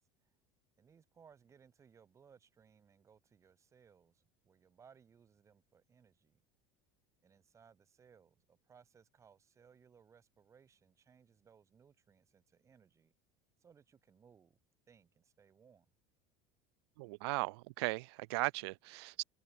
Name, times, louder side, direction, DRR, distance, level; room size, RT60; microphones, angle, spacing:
voice 1, 0.8-6.4 7.2-13.1 13.6-14.6 14.9-15.9, right 6 dB, 20° right, 2.8 m, -65 dB
voice 2, 17.0-19.2, right 25 dB, 85° right, 0.8 m, -37 dB
cardioid pair, 150°, 13 cm